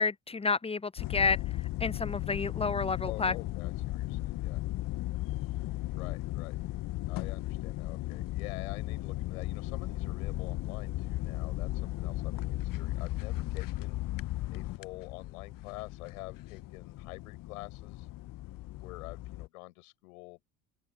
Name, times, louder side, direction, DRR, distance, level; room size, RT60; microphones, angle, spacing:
voice 1, 0.0-1.4 1.8-3.3, left 4 dB, 15° left, 0.9 m, -30 dB
sound 1, 1.0-19.5, left 17 dB, 45° left, 1.2 m, -36 dB
voice 2, 3.0-4.6 5.9-6.6 7.1-14.0 14.5-18.1 18.8-20.6, left 21 dB, 70° left, 7.7 m, -47 dB
open air
figure-of-eight pair, 55°, 44 cm